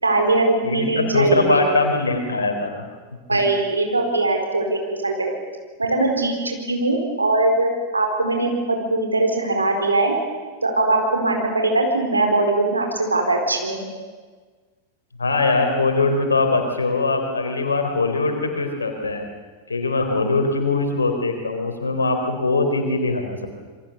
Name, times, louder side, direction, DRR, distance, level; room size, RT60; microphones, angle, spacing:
voice 1, 0.0-1.7 3.3-5.3 5.8-10.2 10.6-13.8, right 2 dB, 80° right, 3 dB, 4.6 m, -21 dB
voice 2, 0.6-2.8 3.3-3.4 15.2-19.3 19.7-23.5, left 3 dB, 75° left, 5 dB, 4.0 m, -21 dB
27.5 x 23.5 x 7.1 m, 1.5 s
figure-of-eight pair, 90°, 0 cm